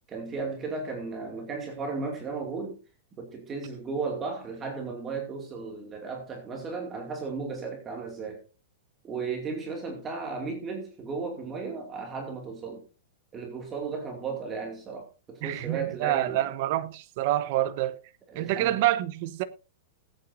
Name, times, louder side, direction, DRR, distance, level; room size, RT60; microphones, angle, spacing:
voice 1, 0.1-2.8 3.2-8.4 9.0-12.8 13.3-16.4 18.3-18.8, right 4 dB, 20° right, 2.5 m, -35 dB
voice 2, 15.4-18.0 18.3-19.4, right 14 dB, 45° right, 1.1 m, -27 dB
20.0 x 8.9 x 2.7 m
supercardioid pair, 165°, 0 cm